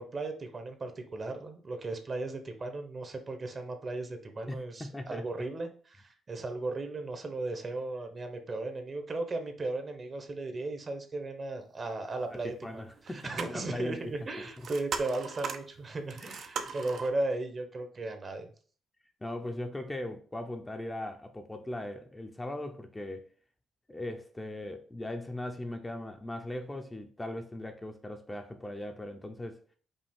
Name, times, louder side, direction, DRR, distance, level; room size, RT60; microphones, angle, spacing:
voice 1, 0.0-12.8 13.1-18.5, right 2 dB, 35° right, 0.8 m, -36 dB
voice 2, 4.5-5.2 12.4-14.1 16.2-16.7 19.2-23.3 23.9-29.6, left 1 dB, 15° left, 0.6 m, -39 dB
sound 1, 13.0-17.1, right 5 dB, 60° right, 0.5 m, -39 dB
5.3 x 2.4 x 3.5 m
cardioid pair, 90°, 0 cm